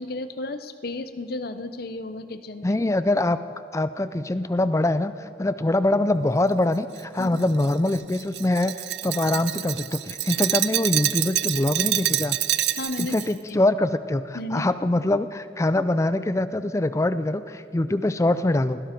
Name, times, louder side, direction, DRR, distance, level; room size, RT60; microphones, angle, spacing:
voice 1, 0.0-2.8 7.2-7.3 12.7-13.1 14.3-14.6, left 2 dB, 55° left, 11 dB, 0.7 m, -33 dB
voice 2, 2.6-3.4 3.7-12.4 13.0-18.8, left 1 dB, 15° left, 13 dB, 0.4 m, -24 dB
Glass, 7.0-13.3, right 14 dB, 60° right, 0.4 m, -27 dB
17.0 x 16.5 x 4.5 m, 2.4 s
head